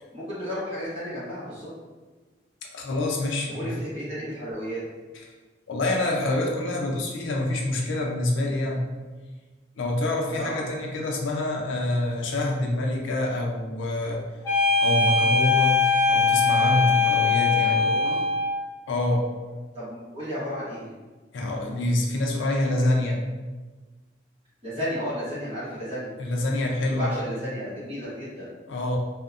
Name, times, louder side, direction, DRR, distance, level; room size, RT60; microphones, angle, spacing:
voice 1, 0.1-1.7 3.5-4.8 10.3-10.6 17.5-18.2 19.7-20.9 24.6-26.1 26.9-28.5, equal, 30° right, -10 dB, 1.0 m, -33 dB
voice 2, 2.7-3.7 5.7-8.9 9.8-14.2 14.8-17.9 18.9-19.3 21.3-23.2 26.2-27.1 28.7-29.0, left 1 dB, 85° left, 0 dB, 0.5 m, -26 dB
sound 1, 14.4-18.6, left 4 dB, 20° left, 0.8 m, -21 dB
2.7 x 2.1 x 2.4 m, 1.3 s
head